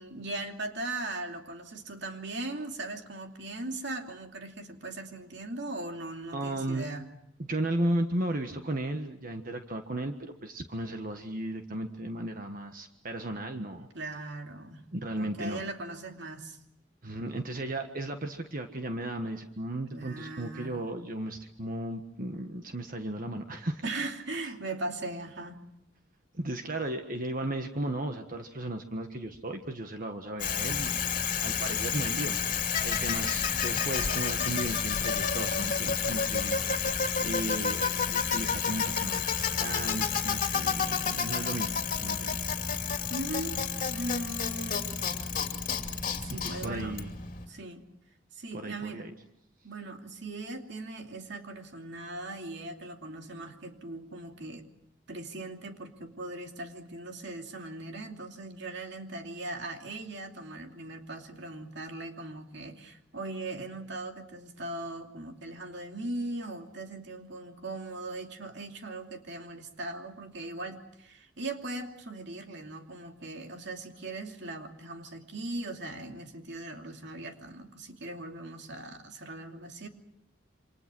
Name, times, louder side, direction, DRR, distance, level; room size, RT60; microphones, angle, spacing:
voice 1, 0.0-7.1 13.9-14.8 15.1-16.6 19.9-20.9 23.8-25.6 43.1-43.6 43.9-45.0 46.2-47.0 47.5-47.8 48.3-49.1 49.6-54.7 55.1-79.9, right 2 dB, 65° right, 3 dB, 2.8 m, -39 dB
voice 2, 6.3-6.9 7.4-13.9 14.9-15.6 17.0-23.8 24.4-24.5 26.3-31.0 31.4-42.5 46.4-47.1 48.5-49.1, right 1 dB, 45° right, 6 dB, 1.5 m, -35 dB
Bicycle, 30.4-47.5, left 6 dB, 45° left, 2.6 m, -30 dB
28.5 x 25.5 x 6.2 m, 0.76 s
head